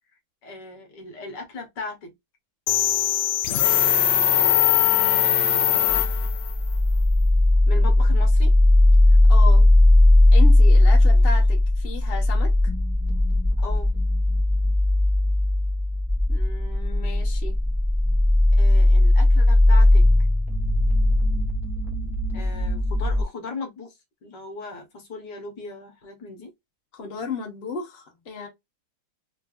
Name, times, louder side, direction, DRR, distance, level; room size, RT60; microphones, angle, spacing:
voice 1, 0.4-2.1 4.1-5.0 7.7-8.5 10.9-11.3 13.6-13.9 18.5-20.1 22.3-26.5, left 3 dB, 60° left, 1.6 m, -38 dB
sound 1, 2.7-6.5, left 11 dB, 85° left, 1.5 m, -20 dB
sound 2, 5.9-23.2, left 1 dB, ahead, 1.0 m, -18 dB
voice 2, 9.3-9.7 10.3-12.5 16.3-17.5 26.9-28.5, left 5 dB, 35° left, 1.1 m, -34 dB
3.8 x 3.2 x 2.5 m
omnidirectional pair, 2.3 m